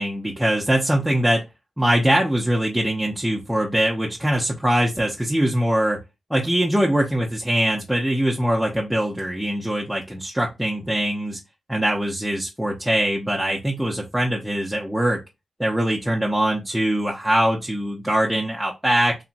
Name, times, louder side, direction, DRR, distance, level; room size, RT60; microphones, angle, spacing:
voice 1, 0.0-1.4 1.8-6.0 6.3-11.4 11.7-15.2 15.6-19.2, right 1 dB, 5° right, -2 dB, 0.7 m, -22 dB
2.8 x 2.7 x 2.5 m, 0.24 s
cardioid pair, 50°, 0 cm